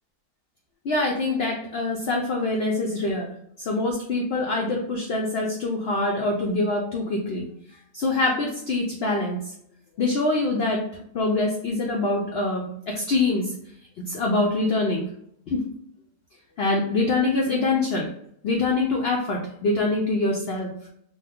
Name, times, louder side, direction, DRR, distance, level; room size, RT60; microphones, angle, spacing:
voice 1, 0.8-3.3 3.6-7.5 7.9-9.5 10.0-10.8 11.1-13.5 14.0-15.1 15.5-15.6 16.6-18.1 18.4-20.7, left 2 dB, 80° left, 1 dB, 0.5 m, -24 dB
2.6 x 2.3 x 3.5 m, 0.71 s
omnidirectional pair, 1.6 m